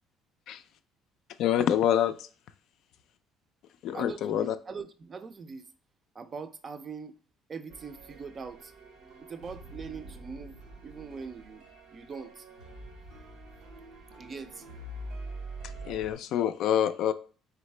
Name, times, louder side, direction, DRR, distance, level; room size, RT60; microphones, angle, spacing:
voice 1, 1.4-2.3 3.8-4.5 15.8-17.1, left 10 dB, 65° left, 11 dB, 0.3 m, -26 dB
voice 2, 3.9-5.7 6.1-7.1 7.5-8.7 9.3-10.6 10.8-11.6 11.9-12.5 14.2-14.6, right 5 dB, 35° right, 10 dB, 0.4 m, -42 dB
sound 1, 7.7-16.1, right 2 dB, 90° right, 0.9 m, -45 dB
3.9 x 3.5 x 3.2 m, 0.39 s
cardioid pair, 120°, 0 cm